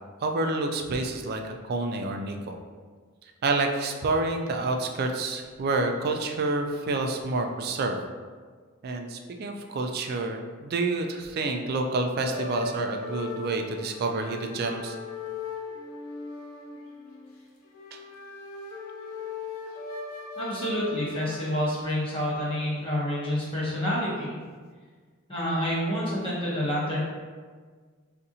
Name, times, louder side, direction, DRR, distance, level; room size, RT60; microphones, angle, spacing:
voice 1, 0.2-2.6 3.4-8.0 8.8-15.0, right 2 dB, 45° right, 4 dB, 0.3 m, -28 dB
sound 1, 12.3-21.8, left 3 dB, 85° left, 0.6 m, -38 dB
voice 2, 20.4-24.4 25.3-27.0, equal, 25° left, -7 dB, 0.9 m, -28 dB
4.0 x 2.5 x 2.7 m, 1.5 s
head